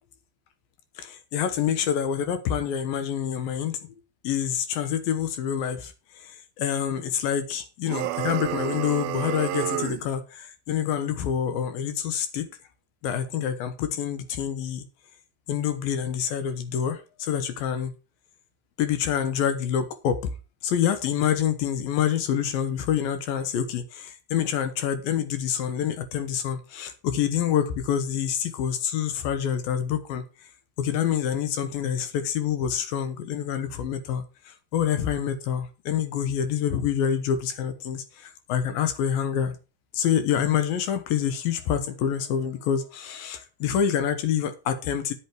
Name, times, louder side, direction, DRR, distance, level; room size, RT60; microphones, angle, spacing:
voice 1, 1.0-3.8 4.2-12.5 13.0-14.8 15.5-17.9 18.8-20.3 20.6-30.2 30.8-39.5 39.9-45.1, left 9 dB, 70° left, 2.6 m, -27 dB
sound 1, 7.8-10.1, right 14 dB, 80° right, 2.4 m, -30 dB
9.9 x 8.3 x 4.6 m
omnidirectional pair, 4.6 m